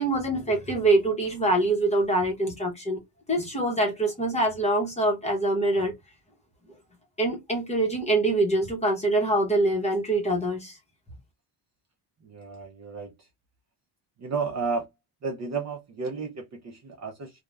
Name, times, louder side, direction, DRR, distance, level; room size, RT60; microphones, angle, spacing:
voice 1, 0.0-3.0 3.3-5.9 7.2-10.8, right 2 dB, 15° left, 0.7 m, -24 dB
voice 2, 12.2-13.1 14.2-14.9 15.2-17.4, right 4 dB, 40° right, 0.4 m, -32 dB
2.4 x 2.1 x 3.1 m
cardioid pair, 180°, 47 cm